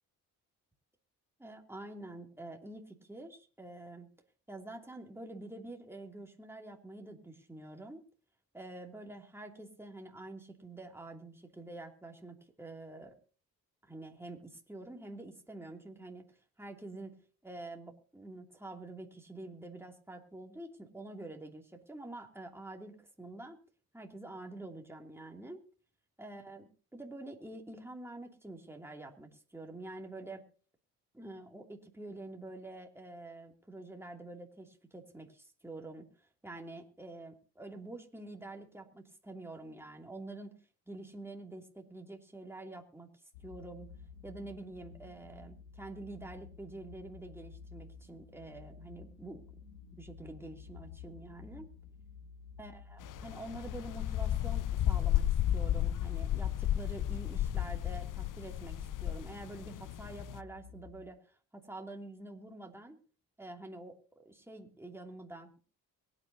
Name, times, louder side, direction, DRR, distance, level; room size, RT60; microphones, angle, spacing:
voice 1, 1.4-4.1 4.5-8.0 8.5-13.1 13.8-16.3 16.6-17.2 17.4-23.6 23.9-25.6 26.2-30.4 31.1-36.1 36.4-40.6 40.9-43.1 43.4-43.9 44.2-49.4 50.0-51.7 52.6-63.0 63.4-65.6, right 2 dB, 5° right, 2 dB, 2.7 m, -47 dB
sound 1, 43.3-61.1, left 6 dB, 85° left, 1.7 m, -52 dB
sound 2, 53.0-60.4, left 12 dB, 45° left, 0.6 m, -33 dB
23.0 x 9.8 x 2.8 m, 0.39 s
hypercardioid pair, 45°, 45 cm